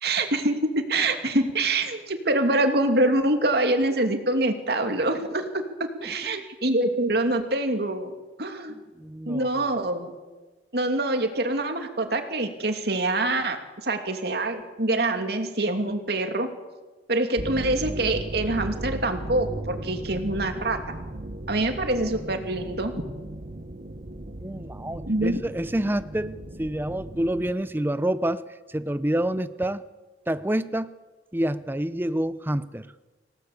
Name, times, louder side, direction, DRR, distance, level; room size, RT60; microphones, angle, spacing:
voice 1, 0.0-8.7 9.3-10.1 10.7-16.5 17.1-21.0 21.5-22.9 25.0-25.4, right 2 dB, 60° right, 5 dB, 2.8 m, -25 dB
voice 2, 8.7-9.7 24.4-29.8 30.3-30.9 31.3-32.9, right 1 dB, 10° right, 14 dB, 0.7 m, -28 dB
sound 1, 17.4-27.5, right 1 dB, 45° right, 1.0 m, -36 dB
26.0 x 17.5 x 8.1 m, 1.2 s
head